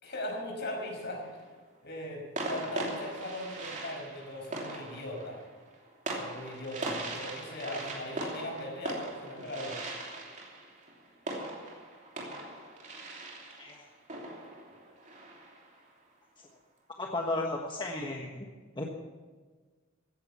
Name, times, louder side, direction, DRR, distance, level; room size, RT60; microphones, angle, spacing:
voice 1, 0.0-1.2 1.8-5.4 6.2-9.8, left 1 dB, 55° left, 0 dB, 5.7 m, -39 dB
sound 1, 0.8-1.4 2.4-15.8, right 2 dB, 40° right, 2.9 m, -40 dB
voice 2, 17.0-18.5 18.8-18.9, left 2 dB, 25° left, 0 dB, 1.3 m, -34 dB
16.0 x 10.5 x 7.1 m, 1.4 s
head